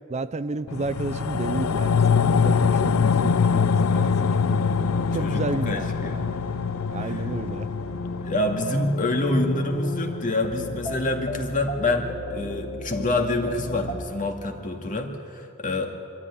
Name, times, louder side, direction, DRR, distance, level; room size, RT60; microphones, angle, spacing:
voice 1, 0.1-4.6 5.1-6.3 6.9-7.7, right 3 dB, 30° right, 13 dB, 0.5 m, -32 dB
sound 1, 0.7-11.3 11.6-11.7, left 6 dB, 80° left, 0.5 m, -24 dB
sound 2, 0.7-13.9, left 1 dB, 55° left, 2.8 m, -37 dB
sound 3, 0.8-10.6, right 3 dB, 90° right, 0.9 m, -43 dB
voice 2, 5.2-6.2 7.0-7.3 8.2-15.9, left 2 dB, 40° left, 3 dB, 2.2 m, -27 dB
24.5 x 13.5 x 9.8 m, 2.6 s
head